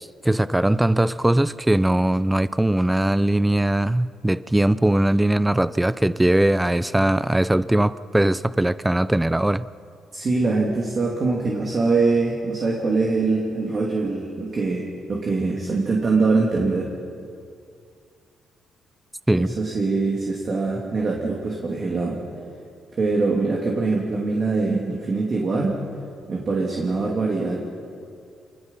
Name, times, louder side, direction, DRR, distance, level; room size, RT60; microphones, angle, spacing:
voice 1, 0.0-9.7 19.3-19.5, right 1 dB, 10° right, 16 dB, 0.5 m, -20 dB
voice 2, 10.1-16.9 19.4-22.2 22.9-25.8 26.3-27.6, right 3 dB, 40° right, -1 dB, 3.0 m, -23 dB
27.0 x 19.5 x 5.7 m, 2.4 s
cardioid pair, 90°, 0 cm